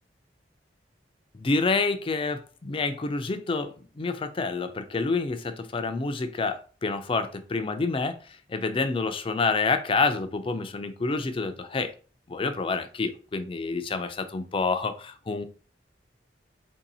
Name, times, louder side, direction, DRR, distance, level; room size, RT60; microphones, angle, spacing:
voice 1, 1.3-11.9 12.3-15.4, left 4 dB, 30° left, 9 dB, 0.4 m, -28 dB
2.9 x 2.7 x 4.1 m, 0.38 s
head